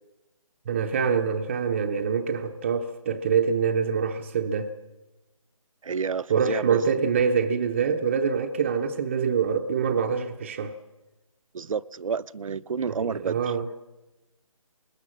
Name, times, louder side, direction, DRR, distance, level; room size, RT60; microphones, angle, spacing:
voice 1, 0.7-4.7 6.3-10.7 13.0-13.6, right 6 dB, 20° right, 0.7 m, -25 dB
voice 2, 5.8-7.1 11.5-13.6, right 6 dB, 70° right, 0.6 m, -30 dB
20.5 x 18.5 x 7.3 m
hypercardioid pair, 165°, 18 cm